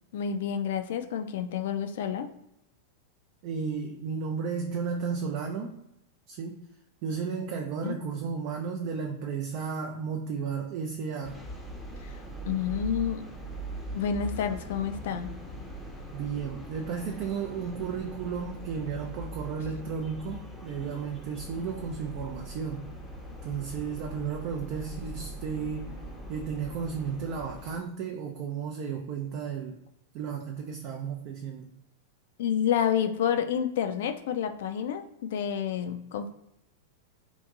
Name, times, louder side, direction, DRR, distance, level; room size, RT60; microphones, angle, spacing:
voice 1, 0.1-2.3 7.8-8.0 12.0-12.2 12.5-13.2 13.9-15.3 32.4-36.3, left 8 dB, 60° left, 8 dB, 0.3 m, -29 dB
voice 2, 3.4-5.8 6.3-6.6 7.0-11.4 16.1-22.9 23.4-25.9 26.3-29.8 30.1-31.7, right 6 dB, 45° right, 2 dB, 0.4 m, -33 dB
sound 1, 11.2-27.8, right 1 dB, ahead, 0.6 m, -41 dB
2.9 x 2.5 x 2.4 m, 0.83 s
figure-of-eight pair, 95°, 0 cm